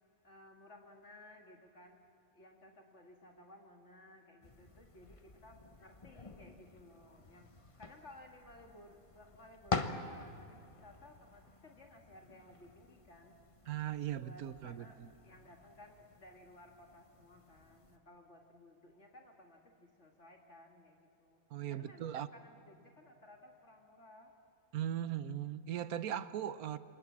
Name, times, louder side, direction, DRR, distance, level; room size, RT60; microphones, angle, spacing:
voice 1, 0.2-2.0 2.3-7.5 7.8-13.4 14.1-21.4 21.7-24.3, left 1 dB, 55° left, 2 dB, 2.2 m, -58 dB
sound 1, 4.4-18.0, left 3 dB, 25° left, 1.0 m, -46 dB
voice 2, 13.7-15.1 21.5-22.3 24.7-26.8, right 10 dB, 90° right, 14 dB, 1.3 m, -39 dB
27.5 x 24.5 x 7.4 m, 2.7 s
omnidirectional pair, 1.5 m